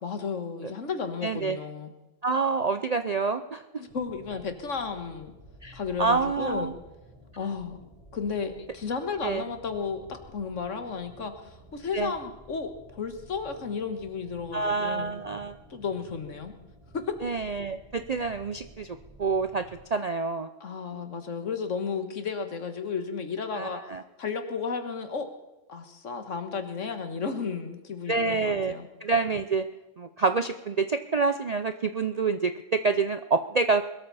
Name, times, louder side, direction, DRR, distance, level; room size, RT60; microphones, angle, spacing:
voice 1, 0.0-1.9 3.8-5.3 5.7-6.8 7.4-15.2 15.7-16.5 16.9-17.1 20.6-23.8 24.2-25.3 25.7-28.9, left 5 dB, 70° left, 7 dB, 1.8 m, -33 dB
voice 2, 1.2-1.6 2.2-3.6 5.6-6.7 9.2-9.4 11.9-12.1 14.5-15.5 17.2-19.6 19.9-20.5 23.6-24.0 28.1-28.7 29.0-29.6 30.0-33.8, right 4 dB, 50° right, 9 dB, 0.4 m, -27 dB
sound 1, 3.9-19.8, right 1 dB, 25° right, 3.5 m, -53 dB
21.5 x 13.0 x 4.1 m, 1.0 s
omnidirectional pair, 1.4 m